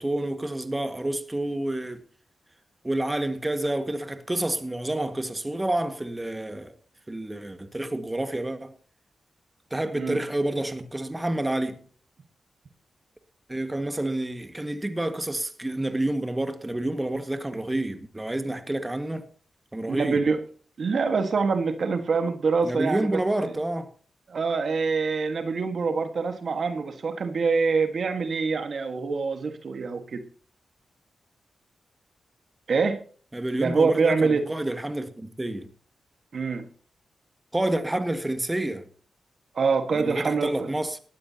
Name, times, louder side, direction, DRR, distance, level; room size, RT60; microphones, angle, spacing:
voice 1, 0.0-2.0 2.8-6.7 7.1-8.7 9.7-11.8 13.5-19.3 19.7-20.2 22.6-23.9 33.3-35.7 37.5-38.9 39.9-41.0, right 1 dB, 20° right, 1.8 m, -29 dB
voice 2, 19.9-20.4 20.8-23.5 24.3-30.2 32.7-33.0 33.6-34.4 36.3-36.7 39.5-40.7, right 4 dB, 65° right, 1.6 m, -25 dB
18.0 x 13.0 x 2.9 m
cardioid pair, 50°, 0 cm